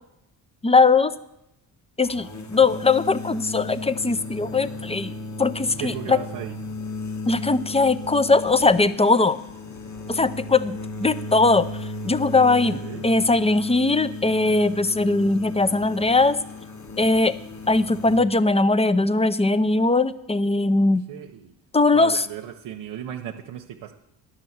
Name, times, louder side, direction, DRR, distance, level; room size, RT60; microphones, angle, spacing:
voice 1, 0.6-1.1 2.0-5.1 5.4-6.2 7.3-9.4 10.1-11.7 12.0-16.4 17.0-17.4 17.7-21.1 21.7-22.2, left 3 dB, 15° left, 15 dB, 0.5 m, -20 dB
sound 1, 2.0-18.2, left 2 dB, 35° left, 1.5 m, -35 dB
voice 2, 5.8-6.6 12.6-13.0 20.8-21.5 21.9-23.9, right 10 dB, 80° right, 2 dB, 0.8 m, -36 dB
10.5 x 6.3 x 7.9 m, 0.84 s
supercardioid pair, 50°, 46 cm